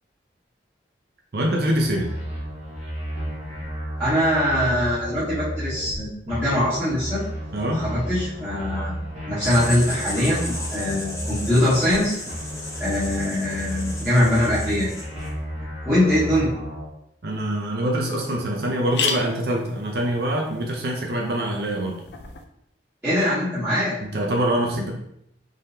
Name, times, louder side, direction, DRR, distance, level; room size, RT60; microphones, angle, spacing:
voice 1, 1.3-2.1 7.5-7.9 17.2-22.0 24.0-24.9, right 1 dB, 60° right, 0 dB, 0.6 m, -24 dB
sound 1, 1.7-6.0 6.2-12.0 12.3-16.9, equal, 35° right, 1.3 m, -33 dB
voice 2, 4.0-7.2 7.7-8.9 9.3-12.1 12.8-14.9 15.8-16.5 23.0-24.0, left 1 dB, 10° right, -14 dB, 1.2 m, -22 dB
Writing, 9.4-15.4, left 1 dB, 15° left, 0.8 m, -35 dB
sound 2, 17.4-17.5 17.9-18.0 18.2-18.3 18.7-22.4, left 6 dB, 70° left, 0.4 m, -33 dB
3.7 x 3.3 x 2.8 m, 0.74 s
head